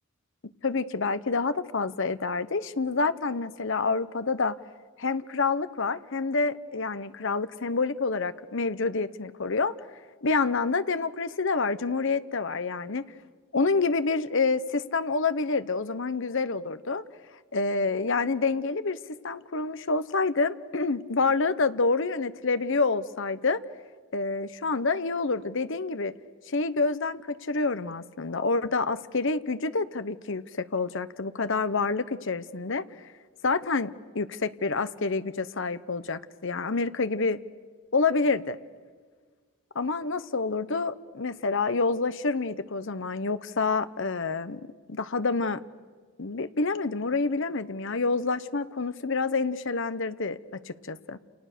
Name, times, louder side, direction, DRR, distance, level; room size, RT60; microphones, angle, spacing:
voice 1, 0.6-4.6 5.0-9.7 10.2-13.0 13.5-17.0 17.5-19.0 19.2-23.6 24.1-26.1 26.5-32.8 33.4-37.4 37.9-38.6 39.7-44.6 44.9-45.6 46.2-50.4 50.7-51.2, left 4 dB, 60° left, 12 dB, 0.9 m, -27 dB
29.0 x 29.0 x 6.8 m, 1.5 s
head